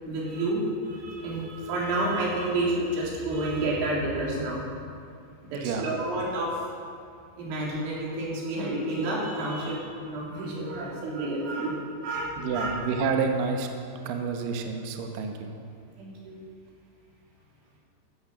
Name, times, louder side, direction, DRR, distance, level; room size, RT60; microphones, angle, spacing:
voice 1, 0.0-4.7 5.5-6.7 7.4-12.8 16.0-16.4, right 2 dB, 85° right, -4 dB, 5.8 m, -30 dB
voice 2, 5.5-5.9 12.4-13.7 14.1-15.5, right 5 dB, 65° right, 3 dB, 2.3 m, -29 dB
14.5 x 14.0 x 6.2 m, 2.4 s
omnidirectional pair, 5.3 m